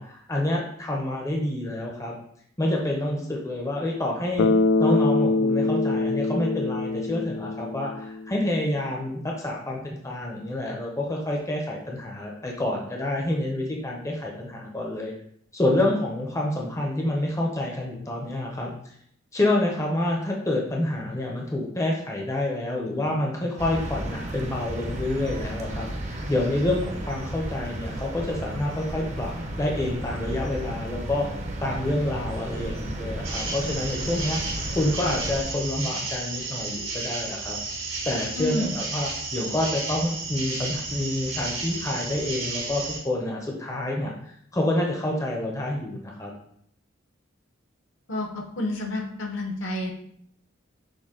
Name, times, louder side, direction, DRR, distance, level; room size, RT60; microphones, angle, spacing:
voice 1, 0.0-2.2 2.6-4.5 4.8-15.1 15.5-18.7 19.3-29.3 29.6-31.3 31.6-34.4 34.7-37.6 38.1-44.1 44.5-46.3, left 1 dB, 15° left, -1 dB, 0.5 m, -28 dB
Bass guitar, 4.4-8.4, left 3 dB, 90° left, 0.3 m, -24 dB
sound 1, 23.6-35.4, right 1 dB, 35° right, 0.6 m, -33 dB
sound 2, 33.2-43.0, right 3 dB, 80° right, 1.7 m, -32 dB
voice 2, 38.3-38.7 48.1-49.9, left 1 dB, 70° left, 1 dB, 0.9 m, -29 dB
6.3 x 2.2 x 3.7 m, 0.67 s
head